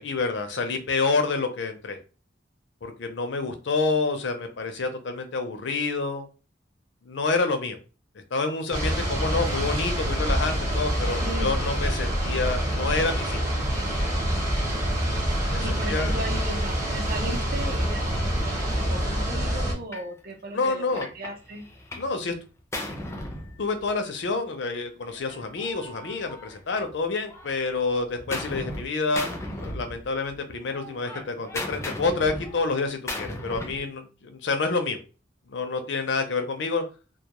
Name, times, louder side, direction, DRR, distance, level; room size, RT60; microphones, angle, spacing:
voice 1, 0.0-2.0 2.8-6.3 7.1-7.8 8.3-13.4 15.5-16.1 20.5-21.1 22.0-22.3 23.6-35.0 35.5-36.8, left 3 dB, 65° left, 6 dB, 0.5 m, -28 dB
sound 1, 8.7-19.7, equal, 15° right, 0.8 m, -26 dB
voice 2, 11.2-11.5 15.6-21.6, right 1 dB, 50° right, 2 dB, 0.7 m, -36 dB
Gunshot gunfire, 19.9-20.1 20.6-22.2 22.4-24.1 25.1-26.9 27.3-28.8 29.1-30.4 30.7-33.9, left 1 dB, 15° left, 0.4 m, -36 dB
2.2 x 2.2 x 2.9 m, 0.34 s
head